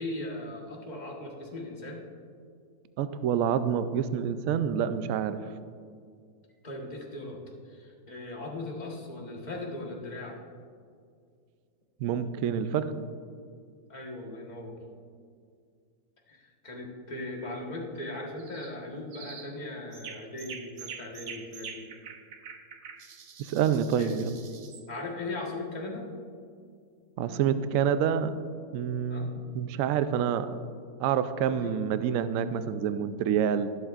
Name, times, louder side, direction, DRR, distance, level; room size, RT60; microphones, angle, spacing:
voice 1, 0.0-2.0 6.6-10.4 13.9-14.8 16.3-21.9 24.0-24.1 24.9-26.1 29.1-29.3 31.5-31.7, left 2 dB, 25° left, -1 dB, 1.3 m, -38 dB
voice 2, 3.0-5.4 12.0-13.0 23.5-24.2 27.2-28.3 28.7-30.5 31.0-33.7, right 8 dB, 85° right, 12 dB, 0.7 m, -27 dB
sound 1, 18.4-18.7 19.1-19.5 19.9-24.9, right 6 dB, 55° right, 1.0 m, -45 dB
19.5 x 7.8 x 2.5 m, 2.2 s
omnidirectional pair, 2.0 m